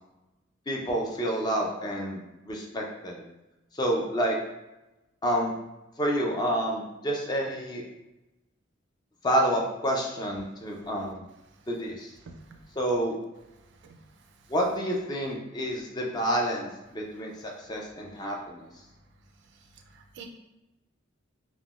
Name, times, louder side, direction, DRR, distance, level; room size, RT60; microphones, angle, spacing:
voice 1, 0.7-3.2 3.7-4.4 5.2-5.5 6.0-7.8 9.2-11.2 11.7-12.1 12.8-13.1 14.5-18.7, equal, 20° left, 0 dB, 0.4 m, -29 dB
voice 2, 12.3-12.6 13.8-14.0 19.9-20.3, right 5 dB, 60° right, 5 dB, 0.3 m, -47 dB
3.5 x 2.2 x 2.4 m, 0.99 s
head